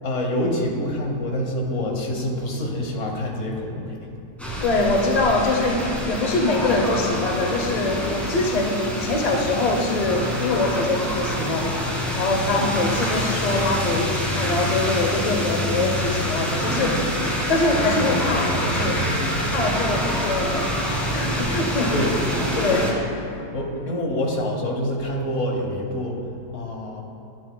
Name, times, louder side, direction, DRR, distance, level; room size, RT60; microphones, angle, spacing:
voice 1, 0.0-4.0 12.6-12.8 21.9-22.2 22.7-22.9 23.5-26.2 26.5-27.0, left 1 dB, 50° left, 1 dB, 1.2 m, -26 dB
sound 1, 4.4-22.9, equal, ahead, 1.3 m, -26 dB
voice 2, 4.6-17.1 17.5-19.0 19.5-21.9 22.6-22.9, left 2 dB, 75° left, 2 dB, 0.3 m, -24 dB
10.5 x 10.5 x 2.2 m, 2.7 s
omnidirectional pair, 1.9 m